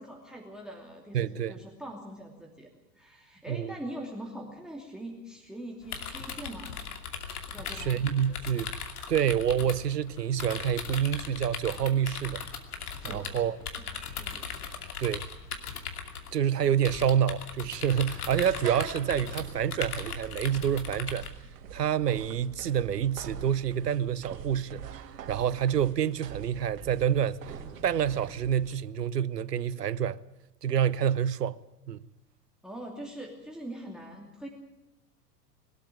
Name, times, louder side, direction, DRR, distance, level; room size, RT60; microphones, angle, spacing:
voice 1, 0.0-6.7 7.5-8.0 8.3-8.4 13.0-13.4 13.9-14.5 32.6-34.5, right 1 dB, ahead, 2.7 m, -43 dB
voice 2, 1.1-1.6 3.5-3.7 7.8-8.7 9.1-12.4 13.0-13.6 15.0-15.3 16.3-21.3 21.7-25.0 25.3-27.4 27.8-30.2 30.6-31.6 31.9-32.0, right 9 dB, 80° right, 0.9 m, -27 dB
sound 1, 5.8-21.3, left 6 dB, 65° left, 2.7 m, -39 dB
sound 2, 18.4-28.8, right 8 dB, 60° right, 2.7 m, -44 dB
21.5 x 13.0 x 9.2 m
figure-of-eight pair, 90°, 47 cm